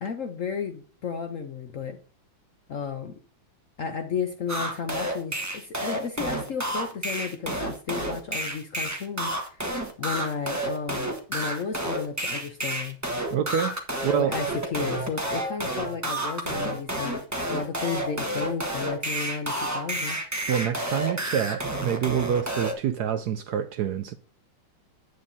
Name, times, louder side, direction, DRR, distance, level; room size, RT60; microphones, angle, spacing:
voice 1, 0.0-2.0 2.7-3.2 3.8-9.6 10.0-13.0 14.1-17.2 17.5-20.2, left 6 dB, 60° left, 0.8 m, -33 dB
sound 1, 4.5-22.7, right 1 dB, 10° right, 1.0 m, -30 dB
voice 2, 13.3-13.7 14.0-14.3 20.5-24.1, right 9 dB, 75° right, 1.0 m, -27 dB
9.5 x 9.0 x 2.7 m
omnidirectional pair, 2.1 m